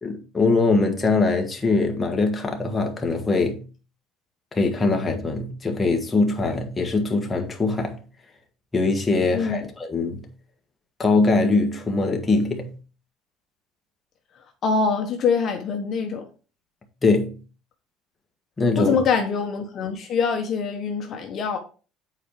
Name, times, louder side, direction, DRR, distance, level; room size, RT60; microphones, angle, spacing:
voice 1, 0.0-3.6 4.5-8.0 8.7-10.3 11.0-12.7 17.0-17.4 18.6-19.0, left 3 dB, 15° left, 1.5 m, -22 dB
voice 2, 9.3-9.6 14.6-16.2 18.8-21.6, left 5 dB, 40° left, 1.2 m, -24 dB
8.1 x 4.6 x 5.0 m
cardioid pair, 135°, 0 cm